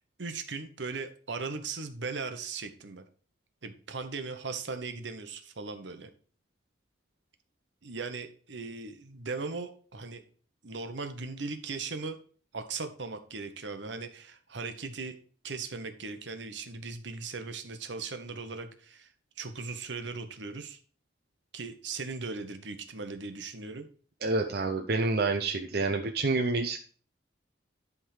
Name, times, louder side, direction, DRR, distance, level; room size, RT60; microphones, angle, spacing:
voice 1, 0.2-3.0 3.6-6.1 7.8-10.2 10.6-12.2 12.5-15.1 15.4-19.1 19.4-20.8 21.5-23.9, right 4 dB, 75° right, 7 dB, 1.1 m, -38 dB
voice 2, 24.2-26.8, right 3 dB, 55° right, 4 dB, 0.7 m, -28 dB
10.5 x 3.7 x 4.9 m, 0.41 s
head